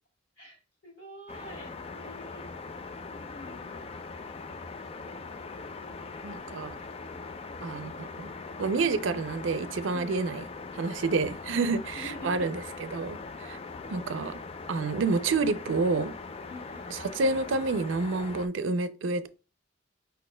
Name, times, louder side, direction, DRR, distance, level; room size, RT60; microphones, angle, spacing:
voice 1, 0.4-2.5 3.1-4.2 9.9-10.0 11.6-12.5 16.5-17.0, left 1 dB, 85° left, 2.7 m, -47 dB
sound 1, 1.3-18.5, left 4 dB, 30° left, 0.4 m, -41 dB
voice 2, 6.2-6.7 7.6-8.3 8.6-10.4 10.7-12.6 12.9-13.6 13.9-14.4 14.7-16.1 16.9-19.3, right 3 dB, 85° right, 0.5 m, -29 dB
5.3 x 4.2 x 2.2 m
head